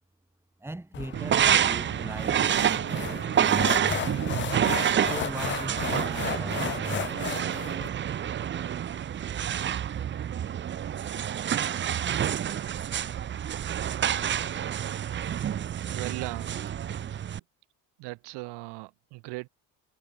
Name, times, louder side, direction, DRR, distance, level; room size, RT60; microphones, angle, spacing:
voice 1, 0.6-4.1 5.0-7.4, right 2 dB, 5° right, 1.6 m, -39 dB
sound 1, 0.9-7.9, left 11 dB, 30° left, 0.4 m, -35 dB
sound 2, 1.1-17.4, right 9 dB, 30° right, 0.5 m, -28 dB
voice 2, 15.9-16.9 18.0-19.5, right 24 dB, 80° right, 1.9 m, -38 dB
supercardioid pair, 95°, 40 cm